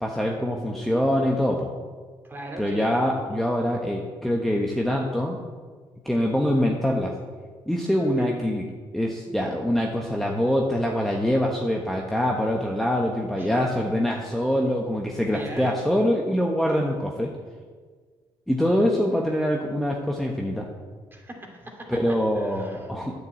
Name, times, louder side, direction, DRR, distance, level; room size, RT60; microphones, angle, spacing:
voice 1, 0.0-1.7 2.6-5.4 6.0-7.1 7.7-8.6 8.9-17.3 18.5-20.7 21.9-23.1, equal, 5° left, -1 dB, 1.3 m, -24 dB
voice 2, 2.2-2.9 8.2-8.3 13.3-13.6 15.3-15.8 21.1-22.9, right 1 dB, 20° right, 1 dB, 2.5 m, -39 dB
9.1 x 6.8 x 8.1 m, 1.5 s
cardioid pair, 80°, 10 cm